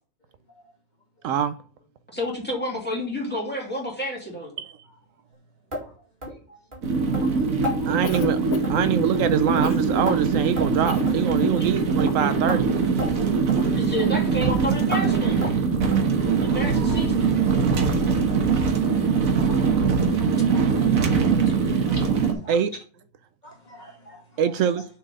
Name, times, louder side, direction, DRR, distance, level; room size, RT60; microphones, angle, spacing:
voice 1, 1.2-1.5 4.6-4.7 7.9-8.4 8.7-12.7 22.5-22.8 24.4-24.9, right 8 dB, 75° right, 0.9 m, -24 dB
voice 2, 2.1-4.5 13.5-15.4 16.4-17.3, left 1 dB, 5° left, 2.7 m, -30 dB
sound 1, 5.7-5.9 6.2-6.4 6.7-6.8 7.1-7.3 7.6-7.8 8.1-8.3 8.6-8.9 9.1-9.3 9.6-10.2 10.6-10.8 11.1-11.2 11.6-11.7 12.0-12.1 12.5-12.6 13.0-13.1 13.5-13.6 14.0-14.1 14.4-14.5 14.9-15.0 15.4-15.6 15.9-16.1 16.4-16.6 16.9-17.0 17.4-17.5 17.9-18.0, left 1 dB, 40° right, 2.3 m, -33 dB
sound 2, 6.8-22.3, right 5 dB, 90° right, 1.7 m, -22 dB
Cough, 8.0-8.9 9.6-9.9 10.8-11.1 11.3-11.6, left 8 dB, 55° left, 0.6 m, -33 dB
voice 3, 16.2-17.0 18.0-18.2 19.4-20.9 21.7-22.6 23.4-24.2, equal, 35° left, 2.1 m, -46 dB
6.6 x 4.7 x 5.1 m
omnidirectional pair, 1.4 m